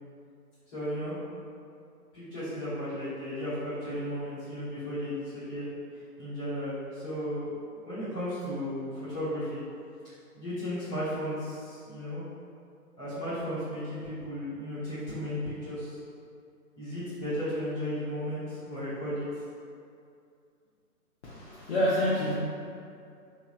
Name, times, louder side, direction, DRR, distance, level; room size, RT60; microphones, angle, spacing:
voice 1, 0.7-1.2 2.1-9.6 10.3-12.2 13.0-16.0 16.8-19.3, equal, 15° left, -16 dB, 1.3 m, -35 dB
voice 2, 21.2-22.3, left 1 dB, 45° left, -11 dB, 0.8 m, -27 dB
3.7 x 2.9 x 2.2 m, 2.4 s
figure-of-eight pair, 145°, 48 cm